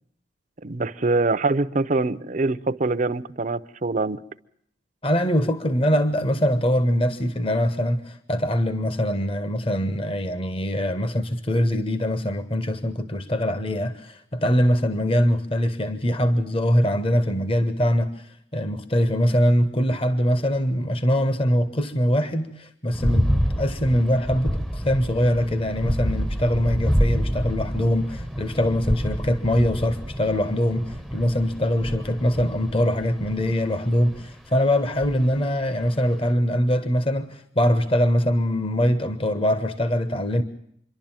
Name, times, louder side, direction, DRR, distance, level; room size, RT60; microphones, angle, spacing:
voice 1, 0.6-4.2, right 3 dB, 45° right, 0.7 m, -24 dB
voice 2, 5.0-18.1 18.5-40.4, equal, 30° left, 1.1 m, -23 dB
sound 1, 22.9-34.3 35.0-35.4 35.8-35.9, equal, ahead, 0.8 m, -27 dB
26.5 x 11.5 x 8.9 m
head